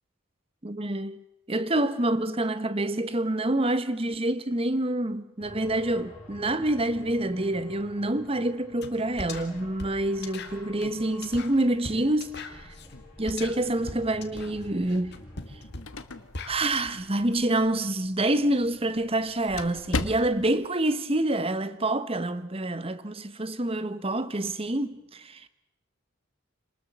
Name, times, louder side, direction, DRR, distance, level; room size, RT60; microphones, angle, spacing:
voice 1, 0.6-1.2 1.5-12.7 13.2-15.2 16.5-25.5, right 1 dB, 25° right, 1.0 m, -27 dB
sound 1, 5.4-15.8, left 1 dB, 30° left, 7.5 m, -49 dB
sound 2, 8.8-8.9 9.2-16.8, left 3 dB, 50° left, 2.1 m, -40 dB
sound 3, 15.4-20.7, left 3 dB, 70° left, 1.3 m, -38 dB
26.5 x 20.0 x 7.2 m
head